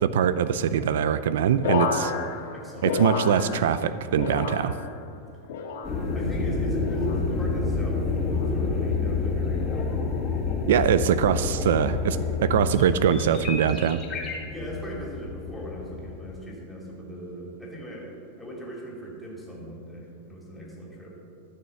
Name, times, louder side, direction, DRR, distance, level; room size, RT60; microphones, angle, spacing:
voice 1, 0.0-2.1 2.8-4.8 10.7-14.0, right 8 dB, 80° right, 13 dB, 0.5 m, -23 dB
sound 1, 1.6-3.9 4.1-5.0 5.5-6.2 6.8-7.3 8.1-8.5 9.5-9.8, left 5 dB, 80° left, 1.6 m, -31 dB
voice 2, 2.5-2.9 6.1-8.0 8.3-9.7 14.5-21.1, right 1 dB, 5° left, -4 dB, 2.5 m, -38 dB
sound 2, 5.8-16.4, left 4 dB, 20° left, 2.0 m, -28 dB
13.0 x 6.4 x 7.0 m, 2.5 s
supercardioid pair, 160°, 0 cm